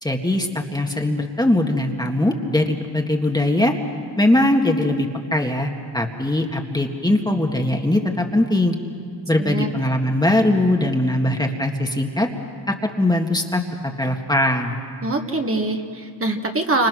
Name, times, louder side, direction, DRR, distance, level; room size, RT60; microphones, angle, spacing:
voice 1, 0.0-3.8 4.2-8.8 9.3-12.3 12.7-13.6 14.0-14.8, left 1 dB, 10° left, 2 dB, 1.9 m, -21 dB
voice 2, 9.4-9.7 15.0-16.9, right 2 dB, 30° right, 3 dB, 2.0 m, -23 dB
29.0 x 26.5 x 6.3 m, 2.3 s
cardioid pair, 100°, 44 cm